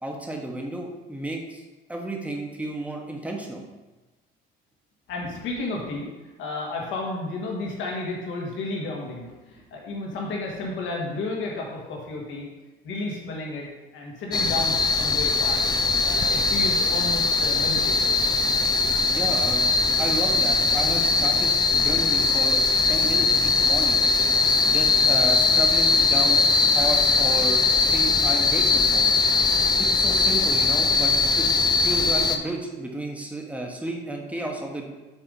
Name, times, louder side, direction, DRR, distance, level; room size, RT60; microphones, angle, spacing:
voice 1, 0.0-1.6 1.9-3.6 19.1-19.7 20.0-22.6 22.9-24.0 24.6-26.4 26.7-27.6 27.9-29.1 29.8-31.5 31.8-34.8, right 1 dB, 5° right, 0 dB, 1.1 m, -32 dB
voice 2, 5.1-6.1 6.4-12.5 12.8-13.6 13.9-15.6 16.0-18.2, left 2 dB, 75° left, -1 dB, 1.7 m, -32 dB
sound 1, 14.3-32.4, left 4 dB, 20° left, 0.5 m, -21 dB
7.1 x 3.5 x 5.3 m, 1.2 s
cardioid pair, 110°, 20 cm